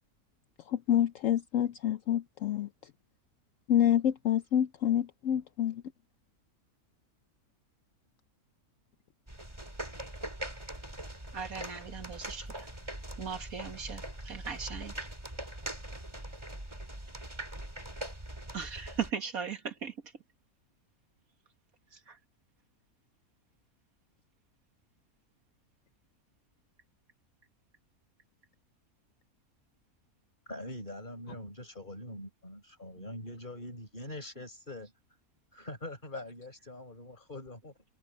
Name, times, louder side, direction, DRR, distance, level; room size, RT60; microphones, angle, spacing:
voice 1, 0.7-2.7 3.7-5.8, left 10 dB, 65° left, 1.0 m, -27 dB
sound 1, 9.3-19.1, right 1 dB, 20° right, 3.8 m, -42 dB
voice 2, 11.3-12.7 13.2-14.9 18.5-19.9 21.9-22.2, right 6 dB, 70° right, 2.2 m, -38 dB
voice 3, 30.5-34.9 35.5-37.7, left 1 dB, 30° left, 5.5 m, -43 dB
omnidirectional pair, 1.6 m